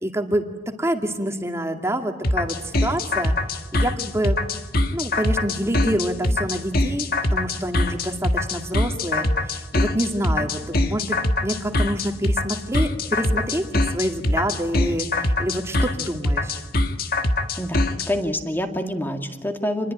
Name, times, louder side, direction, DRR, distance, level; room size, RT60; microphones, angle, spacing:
voice 1, 0.0-3.3 3.7-4.4 4.9-16.6, right 1 dB, 15° right, 4 dB, 2.3 m, -27 dB
sound 1, 2.2-18.1, left 2 dB, 55° left, 1.8 m, -22 dB
voice 2, 18.1-19.9, left 1 dB, 10° left, 5 dB, 2.1 m, -26 dB
28.0 x 21.5 x 10.0 m, 1.3 s
head